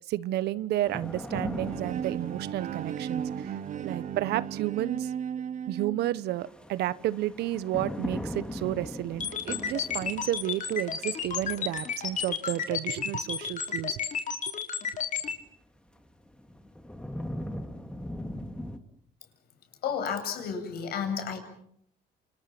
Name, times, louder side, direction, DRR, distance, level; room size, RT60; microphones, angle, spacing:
voice 1, 0.1-3.5 3.8-5.1 5.7-14.0, right 14 dB, 75° right, 17 dB, 1.1 m, -31 dB
sound 1, 0.8-4.0 6.3-12.6 15.3-15.4 16.0-18.8, left 1 dB, 5° left, 2.5 m, -40 dB
Bowed string instrument, 1.3-6.2, right 8 dB, 45° right, 1.0 m, -35 dB
sound 2, 9.2-15.3, left 7 dB, 50° left, 4.3 m, -31 dB
voice 2, 19.8-21.4, left 7 dB, 65° left, 6 dB, 7.8 m, -31 dB
28.5 x 28.0 x 6.0 m, 0.68 s
cardioid pair, 110°, 17 cm